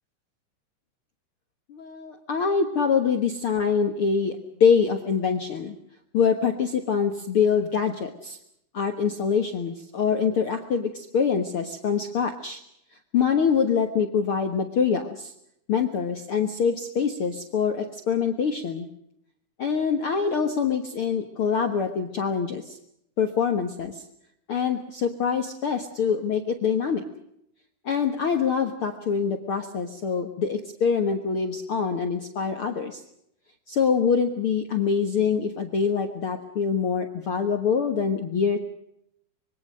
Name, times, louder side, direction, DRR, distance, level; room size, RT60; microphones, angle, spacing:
voice 1, 1.7-5.8 6.1-8.4 8.7-12.6 13.1-15.3 15.7-18.9 19.6-22.8 23.2-24.0 24.5-27.0 27.8-33.0 33.7-38.6, left 6 dB, 60° left, 5 dB, 1.5 m, -25 dB
25.5 x 22.0 x 6.5 m, 0.76 s
omnidirectional pair, 4.4 m